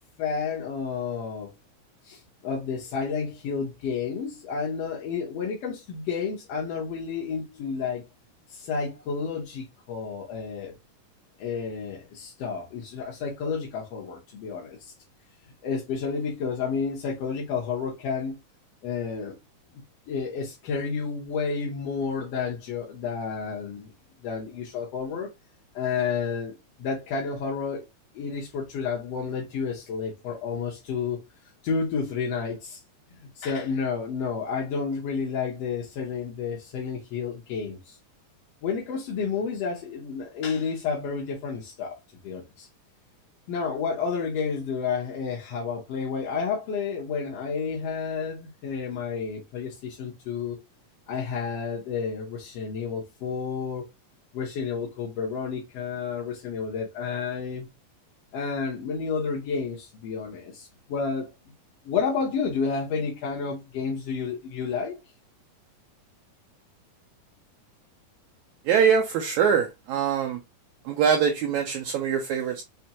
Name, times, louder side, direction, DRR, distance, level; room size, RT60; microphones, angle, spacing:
voice 1, 0.2-1.5 2.0-8.0 8.5-10.7 11.4-14.9 15.6-18.4 18.8-19.4 20.1-23.9 24.2-25.3 25.7-27.9 28.1-31.2 31.6-32.8 33.3-38.0 38.6-42.0 42.2-42.7 43.5-50.6 51.1-53.8 54.3-57.7 58.3-61.3 61.8-65.0, left 5 dB, 65° left, 1.6 m, -30 dB
voice 2, 68.7-70.4 70.9-72.6, right 7 dB, 80° right, 1.7 m, -23 dB
5.8 x 3.2 x 2.9 m
omnidirectional pair, 3.8 m